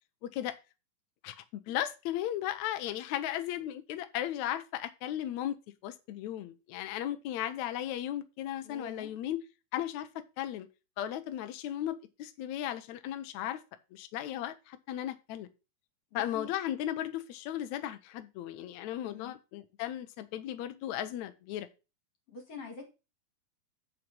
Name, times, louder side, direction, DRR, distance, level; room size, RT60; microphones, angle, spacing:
voice 1, 0.2-0.6 1.2-5.6 5.8-9.4 9.7-10.1 10.4-10.7 11.0-13.6 13.9-15.5 16.1-21.7, left 12 dB, 75° left, 1.8 m, -36 dB
voice 2, 8.6-9.1 16.1-16.5 19.0-19.4 22.3-22.8, left 4 dB, 45° left, 2.9 m, -45 dB
8.2 x 6.1 x 5.4 m
omnidirectional pair, 4.2 m